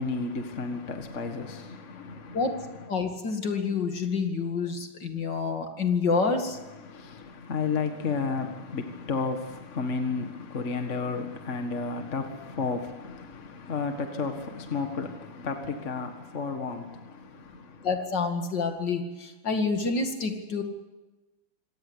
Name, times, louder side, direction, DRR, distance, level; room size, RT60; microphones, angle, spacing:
voice 1, 0.0-2.6 6.8-17.9, left 4 dB, 35° left, 1.9 m, -32 dB
voice 2, 2.9-6.6 17.8-20.6, left 4 dB, 55° left, 2.8 m, -28 dB
26.5 x 17.5 x 8.1 m
omnidirectional pair, 2.3 m